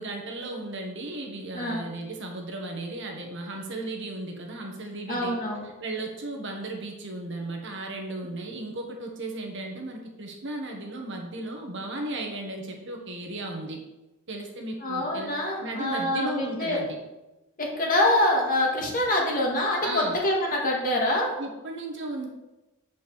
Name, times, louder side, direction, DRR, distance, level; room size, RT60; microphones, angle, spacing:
voice 1, 0.0-5.3 5.8-13.8 14.3-15.3 15.6-17.0 19.8-20.2 21.4-22.3, right 2 dB, 55° right, 2 dB, 1.5 m, -35 dB
voice 2, 1.5-1.8 5.1-5.6 14.8-16.8 17.6-21.3, left 1 dB, 40° left, -2 dB, 1.9 m, -25 dB
7.2 x 5.2 x 6.3 m, 1.0 s
head